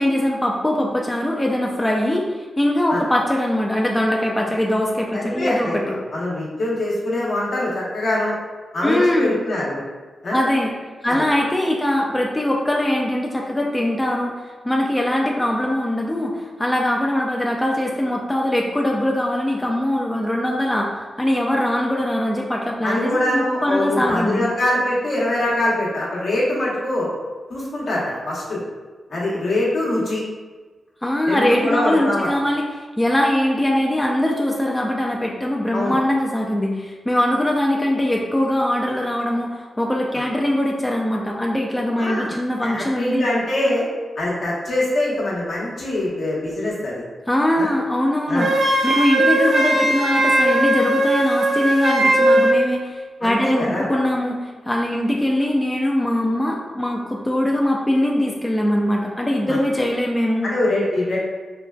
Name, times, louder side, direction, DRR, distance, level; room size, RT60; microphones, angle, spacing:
voice 1, 0.0-6.0 8.8-9.4 10.3-10.7 11.0-24.5 31.0-43.3 47.3-60.5, left 1 dB, 15° left, -1 dB, 0.4 m, -22 dB
voice 2, 5.1-5.8 6.1-8.4 8.7-9.8 10.2-10.4 11.1-11.2 22.8-27.1 27.5-28.6 29.1-30.2 31.3-32.3 35.7-36.0 42.0-42.3 42.6-43.8 44.2-47.0 47.6-47.7 48.3-48.5 53.2-53.9 59.5-59.6 60.4-61.2, left 1 dB, 70° left, -6 dB, 1.0 m, -23 dB
Wind instrument woodwind instrument, 48.4-52.6, right 1 dB, 70° right, 0.5 m, -18 dB
3.8 x 2.3 x 2.2 m, 1.3 s
supercardioid pair, 50°, 0 cm